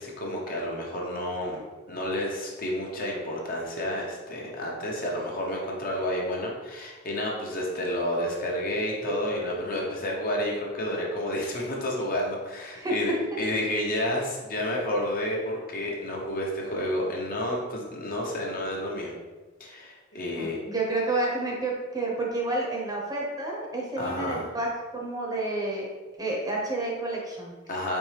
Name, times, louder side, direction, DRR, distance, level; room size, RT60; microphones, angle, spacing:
voice 1, 0.0-19.1 19.6-20.6 24.0-24.5 27.7-28.0, left 1 dB, 45° left, -2 dB, 0.8 m, -30 dB
voice 2, 20.4-25.9 26.2-27.5, right 2 dB, 20° right, -2 dB, 0.8 m, -30 dB
4.4 x 3.1 x 3.3 m, 1.3 s
head